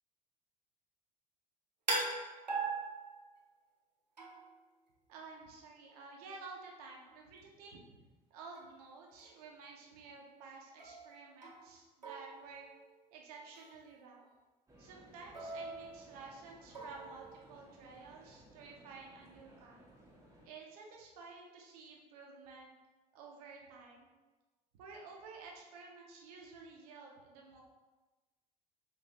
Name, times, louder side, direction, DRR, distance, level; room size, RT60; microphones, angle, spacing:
sound 1, 1.9-3.5 4.2-4.6 8.6-8.7 9.2-9.5 10.8-11.8 12.0-13.1 13.5-13.8 15.3-16.3 16.7-17.4, right 3 dB, 85° right, 0.6 m, -41 dB
voice 1, 5.1-7.8 8.3-12.6 13.1-14.3 14.8-19.8 20.4-22.8 23.1-24.1 24.8-27.6, right 4 dB, 65° right, -1 dB, 0.9 m, -52 dB
sound 2, 14.7-20.5, right 1 dB, 15° right, 1.2 m, -61 dB
5.3 x 3.2 x 3.1 m, 1.2 s
figure-of-eight pair, 60°, 21 cm